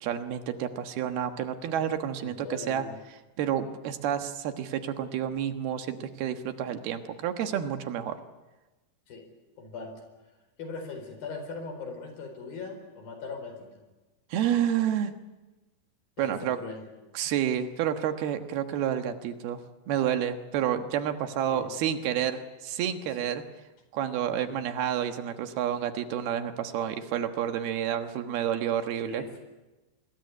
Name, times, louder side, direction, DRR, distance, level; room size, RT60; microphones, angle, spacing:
voice 1, 0.0-2.8 3.4-8.2 14.3-15.1 16.2-16.6 17.1-19.6 19.9-23.4 23.9-29.2, right 9 dB, 75° right, 7 dB, 3.3 m, -29 dB
voice 2, 2.2-3.0 9.1-9.2 9.6-10.0 10.6-13.7 16.2-16.9 21.5-21.7 23.2-23.3 24.4-24.6 29.0-29.4, left 4 dB, 65° left, 6 dB, 6.2 m, -40 dB
25.0 x 21.0 x 9.8 m, 1.1 s
omnidirectional pair, 4.6 m